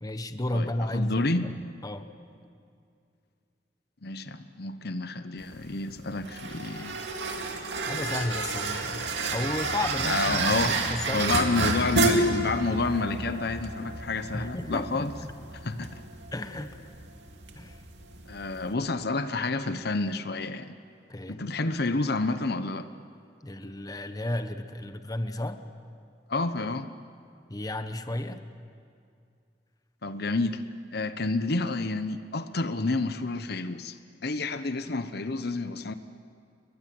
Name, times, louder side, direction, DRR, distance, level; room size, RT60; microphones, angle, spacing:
voice 1, 0.0-1.6 1.8-2.1 7.9-9.0 9.3-11.4 14.3-15.3 15.8-15.9 16.3-16.8 17.5-17.8 21.1-21.4 23.4-25.6 27.5-28.4, left 1 dB, 20° left, 8 dB, 1.1 m, -33 dB
voice 2, 0.5-1.5 4.0-7.0 10.0-15.1 15.6-15.9 18.3-20.8 21.3-22.9 26.3-26.9 30.0-30.6 30.9-35.9, left 3 dB, 60° left, 10 dB, 1.0 m, -29 dB
sound 1, 5.4-18.7, right 3 dB, 80° right, 2.5 m, -31 dB
30.0 x 22.5 x 7.8 m, 2.4 s
head